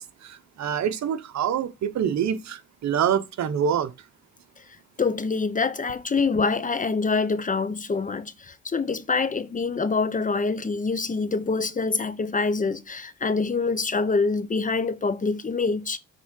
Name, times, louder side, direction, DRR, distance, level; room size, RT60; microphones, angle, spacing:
voice 1, 0.0-3.9, right 8 dB, 65° right, 1.1 m, -26 dB
voice 2, 5.0-16.0, left 4 dB, 25° left, 0.8 m, -25 dB
8.3 x 3.7 x 6.5 m
cardioid pair, 90°, 30 cm